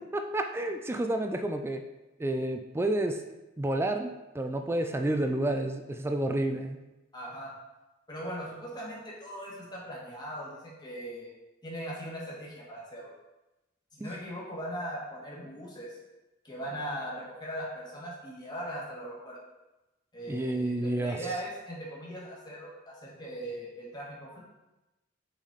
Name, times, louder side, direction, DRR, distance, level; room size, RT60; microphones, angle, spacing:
voice 1, 0.1-1.8 2.2-3.2 3.6-6.8 14.0-14.1 20.3-21.2, right 1 dB, 10° right, 6 dB, 0.3 m, -30 dB
voice 2, 7.1-7.5 8.1-11.3 11.6-13.1 13.9-16.0 16.4-19.4 20.1-24.4, equal, 20° left, -5 dB, 1.6 m, -39 dB
6.0 x 4.1 x 4.0 m, 1.0 s
head